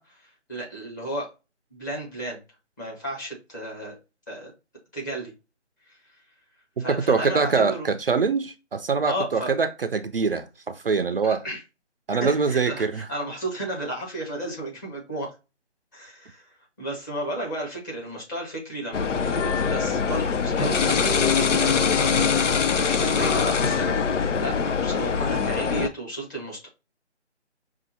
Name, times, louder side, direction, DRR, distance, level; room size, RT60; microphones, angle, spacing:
voice 1, 0.0-1.3 1.7-2.4 2.8-4.0 4.3-4.5 4.9-5.3 5.9-6.0 6.8-7.9 9.0-9.5 11.2-11.6 12.2-15.3 15.9-26.7, right 1 dB, 15° left, 1.0 m, -33 dB
voice 2, 6.8-11.4 12.1-13.0, right 5 dB, 55° right, 0.4 m, -24 dB
sound 1, 18.9-25.9, left 6 dB, 90° left, 0.6 m, -23 dB
5.5 x 2.4 x 2.6 m
figure-of-eight pair, 155°, 35 cm